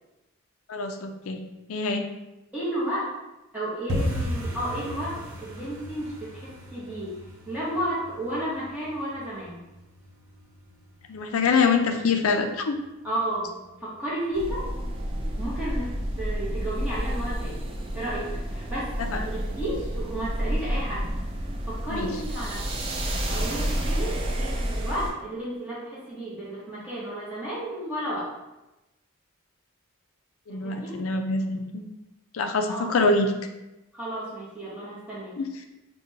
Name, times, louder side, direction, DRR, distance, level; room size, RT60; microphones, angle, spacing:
voice 1, 0.7-1.4 1.7-2.0 11.1-12.8 19.0-19.2 21.9-22.1 30.5-31.8 32.3-33.3 35.4-35.5, left 4 dB, 75° left, 5 dB, 0.4 m, -25 dB
voice 2, 2.5-3.1 3.5-7.2 7.5-9.6 13.0-14.7 15.4-17.6 17.9-21.1 21.6-22.6 23.2-28.3 30.5-31.0 32.7-33.0 33.9-35.3, right 1 dB, 5° right, -9 dB, 1.0 m, -32 dB
sound 1, 3.9-14.6 14.9-15.6 15.8-16.1 16.4-16.8 17.1-17.2 17.7-18.2 18.5-18.6 19.1-19.2, equal, 75° right, 0.8 m, -37 dB
sound 2, 14.3-25.1, equal, 25° right, 0.4 m, -30 dB
5.0 x 2.3 x 2.8 m, 0.99 s
head